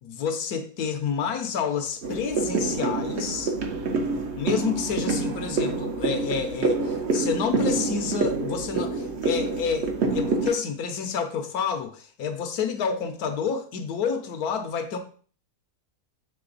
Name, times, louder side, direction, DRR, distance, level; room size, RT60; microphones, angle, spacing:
voice 1, 0.0-3.5 4.4-15.0, left 6 dB, 75° left, 7 dB, 1.2 m, -29 dB
sound 1, 2.0-10.5, right 3 dB, 50° right, 1.0 m, -27 dB
6.8 x 3.6 x 3.8 m, 0.42 s
omnidirectional pair, 1.7 m